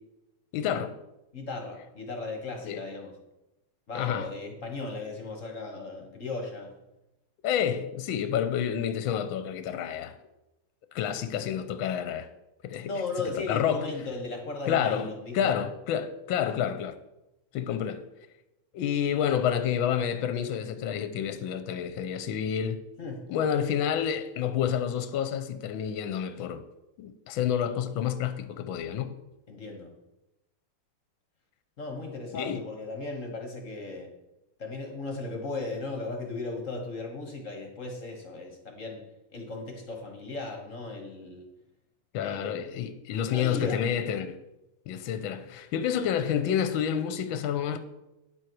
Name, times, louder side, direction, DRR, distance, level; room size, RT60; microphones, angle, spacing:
voice 1, 0.5-0.9 2.6-2.8 3.9-4.3 7.4-10.1 10.9-12.3 12.6-12.9 13.4-13.9 14.7-17.0 17.5-18.0 18.7-22.8 23.3-26.6 27.0-29.1 32.3-32.6 42.1-44.4 44.9-47.8, left 9 dB, 75° left, 1.3 m, -29 dB
voice 2, 1.3-3.1 3.9-6.7 12.8-15.6 23.0-23.3 29.5-29.9 31.8-34.1 34.6-39.0 39.3-41.5 42.2-42.8 43.3-43.8, left 3 dB, 45° left, 1.3 m, -36 dB
9.7 x 7.6 x 4.6 m
omnidirectional pair, 2.4 m